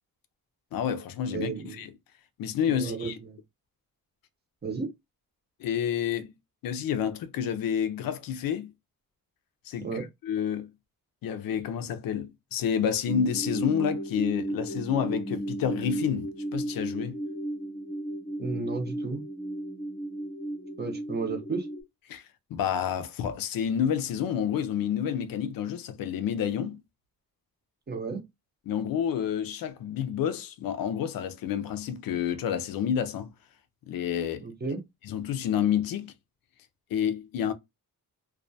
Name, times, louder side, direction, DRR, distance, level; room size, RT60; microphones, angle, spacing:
voice 1, 0.7-1.9 2.4-3.2 5.6-6.3 6.6-8.7 9.7-10.7 11.2-17.2 22.1-22.2 22.5-26.8 28.7-33.3 33.9-34.4 35.0-36.1 36.9-37.5, left 8 dB, 80° left, 0.5 m, -29 dB
voice 2, 1.3-1.8 2.7-3.4 4.6-4.9 9.8-10.0 18.4-19.2 20.8-21.7 27.9-28.2 34.4-34.8, right 4 dB, 30° right, 0.6 m, -33 dB
sound 1, 13.1-21.8, right 1 dB, 15° left, 0.9 m, -34 dB
2.3 x 2.1 x 2.6 m
wide cardioid pair, 150°, 34 cm